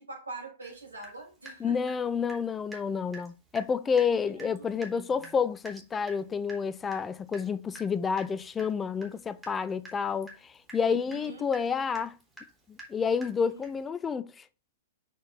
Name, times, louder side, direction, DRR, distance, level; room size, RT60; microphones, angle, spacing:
voice 1, 0.0-1.8 4.2-5.3 10.8-11.4, right 3 dB, 70° right, 5.5 m, -44 dB
Water tap faucet / Drip, 0.6-0.7 1.0-2.4 2.7-2.9 3.1-3.3 3.5-3.7 4.0-4.1 4.4-13.9, right 1 dB, 10° right, 3.1 m, -48 dB
voice 2, 1.6-12.2 12.7-14.4, left 6 dB, 15° left, 0.5 m, -29 dB
6.9 x 6.3 x 4.1 m
figure-of-eight pair, 105°, 0 cm